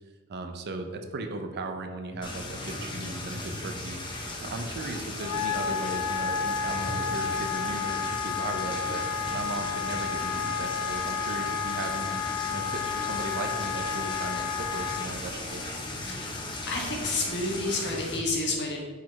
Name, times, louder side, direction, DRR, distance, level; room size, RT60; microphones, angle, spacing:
voice 1, 0.3-4.0 4.4-9.0 9.3-12.2 12.5-15.7, right 2 dB, 45° right, 6 dB, 0.5 m, -37 dB
sound 1, 2.2-18.2, left 2 dB, 20° left, 0.7 m, -36 dB
Wind instrument woodwind instrument, 5.2-15.1, left 6 dB, 90° left, 0.3 m, -31 dB
voice 2, 16.7-18.8, left 2 dB, 50° left, -1 dB, 1.2 m, -30 dB
5.0 x 4.1 x 4.6 m, 1.5 s
head